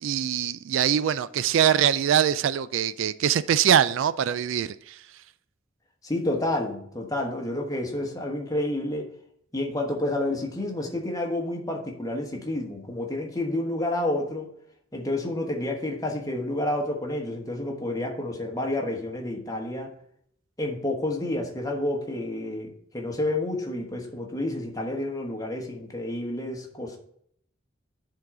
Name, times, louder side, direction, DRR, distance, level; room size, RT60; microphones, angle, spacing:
voice 1, 0.0-5.0, right 9 dB, 65° right, 0.3 m, -23 dB
voice 2, 6.0-9.1 9.5-14.5 14.9-19.9 20.6-27.0, left 1 dB, 20° left, 1.2 m, -29 dB
10.5 x 3.8 x 4.8 m
head